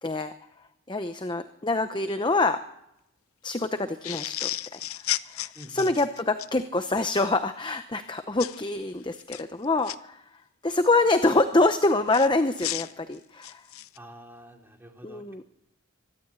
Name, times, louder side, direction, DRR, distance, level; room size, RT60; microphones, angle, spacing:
voice 1, 0.0-0.3 0.9-2.6 3.4-13.7 15.0-15.4, left 2 dB, 20° left, 9 dB, 0.7 m, -26 dB
sound 1, 4.0-6.5 8.4-8.6 9.2-10.0 12.1-14.0, left 13 dB, 80° left, 0.7 m, -33 dB
voice 2, 5.5-5.9 13.9-15.4, right 1 dB, 10° right, 2 dB, 3.2 m, -47 dB
24.0 x 12.5 x 8.8 m, 0.83 s
head